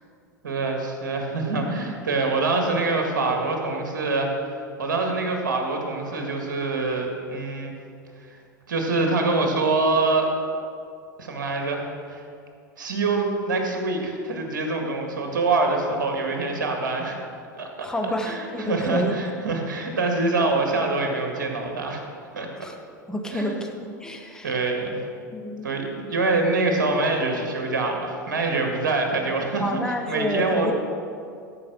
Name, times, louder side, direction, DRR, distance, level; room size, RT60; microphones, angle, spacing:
voice 1, 0.4-7.7 8.3-8.4 8.7-10.3 11.2-12.2 12.8-17.2 17.5-17.9 18.2-22.0 22.3-22.5 23.3-23.6 24.4-25.0 25.6-29.8 30.1-30.7, right 3 dB, 70° right, 3 dB, 1.9 m, -25 dB
voice 2, 17.8-19.1 22.6-22.7 23.1-23.7 24.0-24.6 25.3-25.7 29.6-30.7, left 1 dB, 5° left, 3 dB, 1.2 m, -29 dB
13.5 x 5.6 x 6.2 m, 2.4 s
figure-of-eight pair, 85°, 11 cm